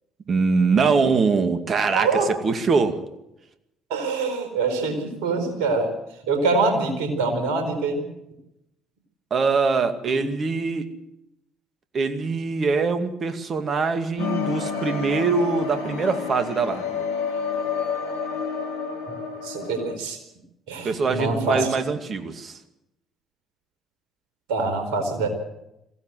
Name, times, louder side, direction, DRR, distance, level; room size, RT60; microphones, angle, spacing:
voice 1, 0.3-3.0 9.3-10.9 11.9-17.0 20.8-22.6, right 4 dB, 45° right, 8 dB, 2.3 m, -23 dB
voice 2, 1.9-2.3 3.9-5.9 6.2-8.0 19.1-19.2 19.4-20.2 20.7-21.8 24.5-25.3, right 3 dB, 70° right, 6 dB, 4.5 m, -24 dB
sound 1, 14.2-20.0, left 6 dB, 75° left, 2.9 m, -29 dB
21.5 x 16.5 x 7.9 m, 0.86 s
figure-of-eight pair, 50°, 0 cm